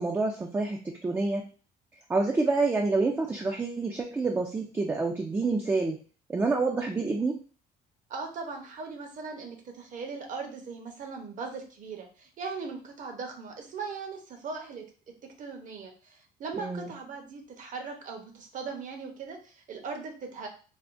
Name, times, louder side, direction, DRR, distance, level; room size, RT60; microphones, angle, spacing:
voice 1, 0.0-1.5 2.1-6.0 6.3-7.4 16.6-16.9, right 3 dB, 15° right, 2 dB, 0.3 m, -28 dB
voice 2, 8.1-14.9 15.2-20.5, right 4 dB, 50° right, 4 dB, 0.7 m, -39 dB
3.4 x 2.1 x 2.5 m, 0.38 s
cardioid pair, 110°, 17 cm